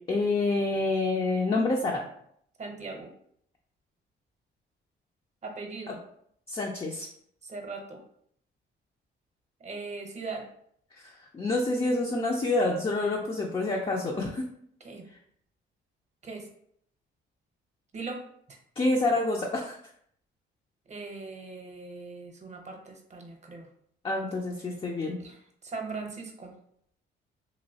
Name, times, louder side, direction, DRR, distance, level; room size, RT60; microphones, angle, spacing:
voice 1, 0.0-2.1 6.5-7.1 11.0-14.4 18.8-19.8 24.0-25.2, left 2 dB, 25° left, -1 dB, 0.4 m, -27 dB
voice 2, 2.6-3.1 5.4-6.0 7.4-8.0 9.6-10.4 14.8-15.0 16.2-16.4 17.9-18.2 20.9-23.7 25.2-25.4 25.6-26.5, right 4 dB, 35° right, 3 dB, 0.8 m, -39 dB
3.0 x 2.7 x 2.7 m, 0.67 s
cardioid pair, 90°, 20 cm